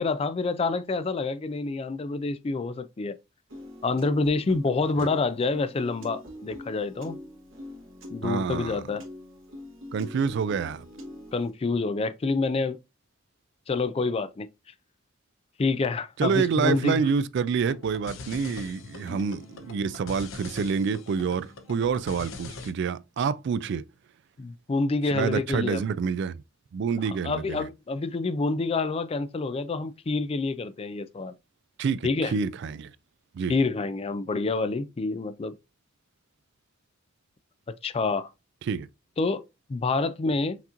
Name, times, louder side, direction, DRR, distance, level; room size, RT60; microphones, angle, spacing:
voice 1, 0.0-3.2 3.8-7.2 8.1-9.0 11.3-12.8 13.7-14.5 15.6-17.0 19.1-19.2 24.4-25.8 27.0-31.3 32.0-32.3 33.5-35.5 37.8-38.3 39.2-39.4 39.7-40.6, left 3 dB, 30° left, 0.3 m, -27 dB
Piano, 3.5-11.5, left 1 dB, 85° right, 1.5 m, -44 dB
voice 2, 8.2-8.8 9.9-10.9 16.2-23.8 25.1-26.4 26.7-27.7 31.8-32.9 33.3-33.5 38.7-38.9, right 6 dB, 60° right, 0.3 m, -27 dB
sound 1, 17.6-22.7, left 4 dB, 80° left, 0.8 m, -42 dB
5.8 x 2.9 x 2.5 m
head